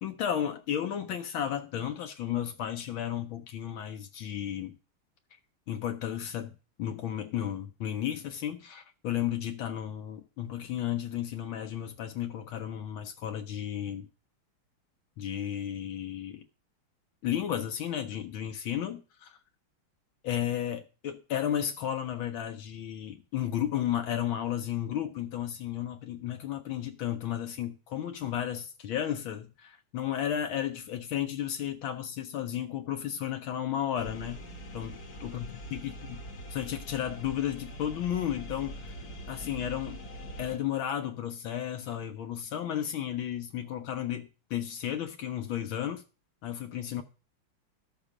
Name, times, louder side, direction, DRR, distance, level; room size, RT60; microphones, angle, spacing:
voice 1, 0.0-4.8 5.7-14.1 15.2-16.4 17.2-19.4 20.2-34.4 34.7-36.2 36.5-39.0 39.3-40.0 40.4-46.0 46.4-47.0, left 10 dB, 75° left, 1.5 m, -33 dB
sound 1, 34.0-40.6, right 1 dB, 50° left, 1.6 m, -43 dB
12.5 x 6.3 x 4.9 m
omnidirectional pair, 2.3 m